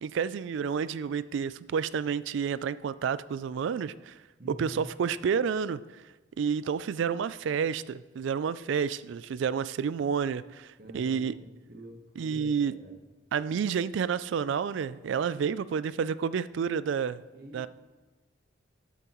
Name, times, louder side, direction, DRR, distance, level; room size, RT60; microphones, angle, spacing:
voice 1, 0.0-4.2 4.5-6.0 6.4-11.3 12.2-12.7 13.3-17.2 17.5-17.7, right 6 dB, 65° right, 17 dB, 0.3 m, -30 dB
voice 2, 4.4-4.9 10.8-12.9 17.3-17.7, right 1 dB, 50° right, 2 dB, 1.3 m, -46 dB
12.0 x 8.4 x 3.1 m, 1.2 s
head